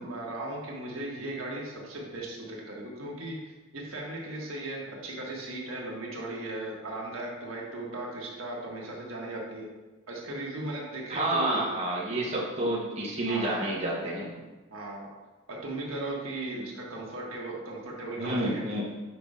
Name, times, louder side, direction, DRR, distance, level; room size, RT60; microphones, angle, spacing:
voice 1, 0.0-3.4 3.7-9.7 10.1-11.7 13.2-13.6 14.7-15.1 15.5-18.6, right 2 dB, 75° right, -3 dB, 1.5 m, -37 dB
voice 2, 11.1-14.3 18.2-18.8, right 1 dB, 35° right, -5 dB, 1.0 m, -29 dB
6.0 x 5.3 x 3.6 m, 1.2 s
head